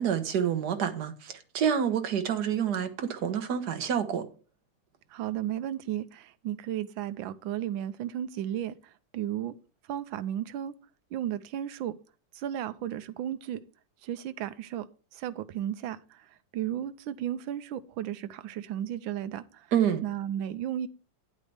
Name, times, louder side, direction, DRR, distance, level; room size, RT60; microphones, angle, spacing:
voice 1, 0.0-4.2 19.7-20.0, right 8 dB, 60° right, 1.5 m, -28 dB
voice 2, 5.1-9.5 9.9-10.7 11.1-12.0 12.3-13.6 14.0-14.9 15.1-19.7 20.0-20.9, right 11 dB, 85° right, 1.4 m, -34 dB
9.9 x 8.2 x 3.4 m
omnidirectional pair, 2.1 m